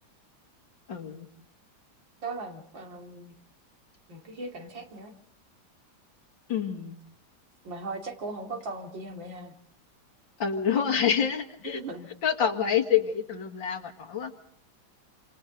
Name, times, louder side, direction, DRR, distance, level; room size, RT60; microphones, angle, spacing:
voice 1, 0.9-1.3 6.5-7.0 10.4-11.8 12.2-14.3, left 8 dB, 80° left, 6 dB, 2.6 m, -27 dB
voice 2, 2.2-3.4 4.1-5.1 7.6-9.6 11.6-12.1, right 3 dB, 80° right, 3 dB, 3.2 m, -38 dB
28.5 x 27.0 x 3.9 m, 0.67 s
omnidirectional pair, 2.0 m